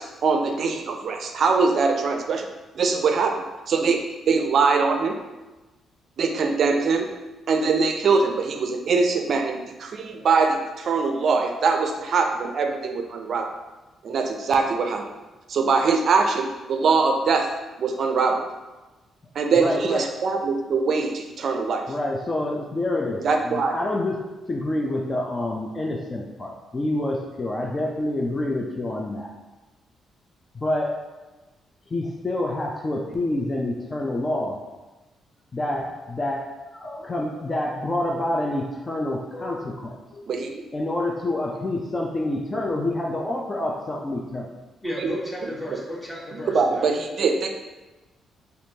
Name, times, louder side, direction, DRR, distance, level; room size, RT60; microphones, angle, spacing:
voice 1, 0.0-2.5 2.7-5.2 6.2-7.1 7.5-13.5 14.0-15.0 15.5-17.5 17.8-18.4 19.4-21.9 23.2-23.7 40.3-40.5 45.0-45.1 46.5-47.5, right 4 dB, 65° right, 4 dB, 0.4 m, -22 dB
voice 2, 19.6-20.1 21.9-29.3 30.5-31.0 31.9-34.6 35.5-40.2 40.7-44.5, left 1 dB, 35° left, 0 dB, 0.5 m, -27 dB
voice 3, 44.8-46.9, equal, 15° left, -4 dB, 1.2 m, -33 dB
4.3 x 2.6 x 2.7 m, 1.1 s
supercardioid pair, 60°, 0 cm